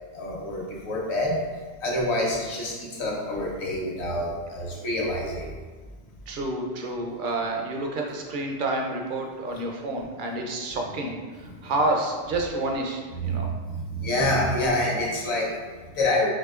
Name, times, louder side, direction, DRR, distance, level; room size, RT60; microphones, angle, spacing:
voice 1, 0.1-1.4 1.8-5.5 11.4-11.7 13.2-16.3, left 1 dB, 70° left, -2 dB, 1.1 m, -27 dB
voice 2, 6.3-13.5, right 2 dB, 55° right, 1 dB, 0.6 m, -29 dB
4.9 x 3.0 x 2.3 m, 1.4 s
omnidirectional pair, 1.2 m